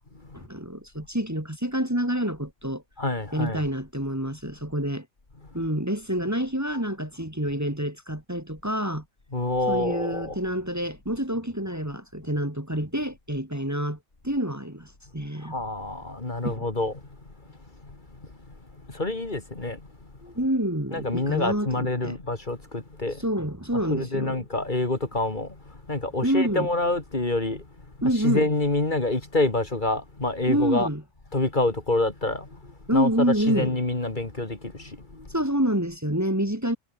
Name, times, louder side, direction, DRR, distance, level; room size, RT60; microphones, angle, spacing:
voice 1, 0.3-2.8 3.3-5.1 5.5-9.0 9.7-14.0 14.2-15.5 16.4-16.6 20.3-22.2 23.2-24.4 26.2-26.7 28.0-28.5 30.5-31.0 32.9-33.7 35.3-36.8, right 1 dB, 15° right, 2.7 m, -27 dB
voice 2, 3.0-3.6 5.6-5.7 9.3-10.4 15.4-17.0 17.8-18.3 18.7-19.9 20.2-20.3 20.9-23.3 23.7-27.7 28.0-30.9 31.3-35.3, left 2 dB, 40° left, 2.7 m, -27 dB
omnidirectional pair, 1.2 m